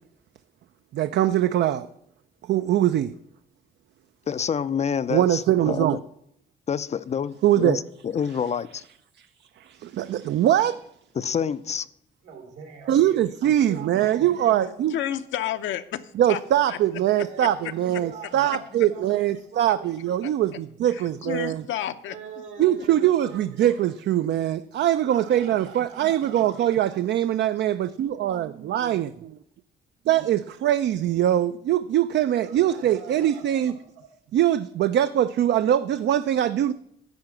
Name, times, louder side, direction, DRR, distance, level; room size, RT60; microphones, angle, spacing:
voice 1, 0.9-1.9 2.5-3.1 5.1-6.0 7.4-7.8 9.6-10.8 12.9-15.0 16.2-21.6 22.6-29.3 30.1-33.7 34.3-36.7, right 11 dB, 60° right, 0.4 m, -22 dB
voice 2, 4.3-5.9 6.7-8.8 11.2-11.9, left 7 dB, 35° left, 0.4 m, -27 dB
voice 3, 12.2-15.0 17.1-19.9 22.1-23.8 25.0-26.8 32.4-34.0, right 6 dB, 80° right, 2.6 m, -44 dB
voice 4, 14.9-16.0 16.3-16.4 16.7-16.8 20.9-22.2, left 11 dB, 75° left, 0.7 m, -30 dB
10.5 x 4.8 x 7.7 m
cardioid pair, 90°, 20 cm